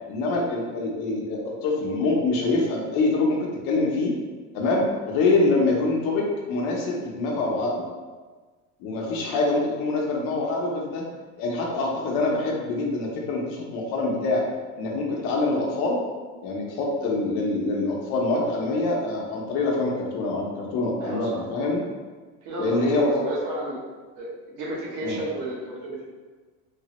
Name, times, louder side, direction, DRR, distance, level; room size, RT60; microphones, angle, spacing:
voice 1, 0.1-4.1 4.5-7.9 8.8-11.0 11.4-14.4 14.8-16.0 16.4-21.8 22.6-23.1 25.0-25.2, left 2 dB, 80° left, -1 dB, 0.7 m, -25 dB
voice 2, 8.9-9.4 21.0-21.4 22.4-23.8 24.2-26.0, right 1 dB, 65° right, -4 dB, 1.0 m, -32 dB
3.3 x 2.0 x 2.9 m, 1.4 s
cardioid pair, 150°, 34 cm